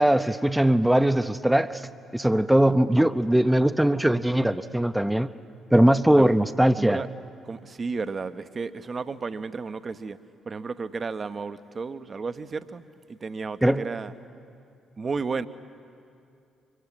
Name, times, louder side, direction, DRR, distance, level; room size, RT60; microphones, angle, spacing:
voice 1, 0.0-1.8 2.1-5.3 5.7-7.0 13.6-13.9, right 1 dB, 5° right, 0.6 m, -20 dB
voice 2, 6.8-7.1 7.4-10.2 10.5-14.1 15.0-15.5, right 4 dB, 40° right, 0.7 m, -33 dB
24.0 x 16.0 x 9.8 m
figure-of-eight pair, 40°, 0 cm